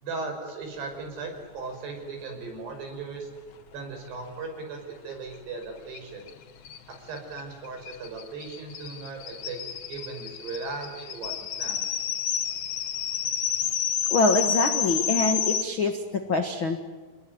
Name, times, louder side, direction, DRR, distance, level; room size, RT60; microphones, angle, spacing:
voice 1, 0.0-3.3 3.7-6.3 7.0-9.6 9.9-11.9, right 4 dB, 65° right, 4 dB, 7.5 m, -37 dB
sound 1, 5.9-6.0 6.3-6.4 6.6-15.6, left 8 dB, 55° left, 2.5 m, -30 dB
voice 2, 14.1-15.9 16.3-16.8, left 3 dB, 75° left, 5 dB, 1.1 m, -24 dB
29.5 x 20.0 x 9.4 m, 1.4 s
omnidirectional pair, 5.1 m